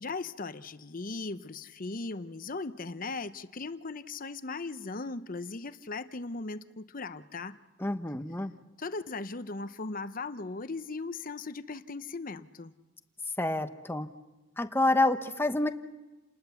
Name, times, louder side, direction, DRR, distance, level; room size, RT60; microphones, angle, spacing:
voice 1, 0.0-7.6 8.8-12.7, left 3 dB, 45° left, 12 dB, 0.8 m, -38 dB
voice 2, 7.8-8.5 13.4-14.1 14.6-15.7, left 2 dB, 10° left, 8 dB, 1.0 m, -28 dB
29.0 x 20.0 x 7.0 m, 1.2 s
head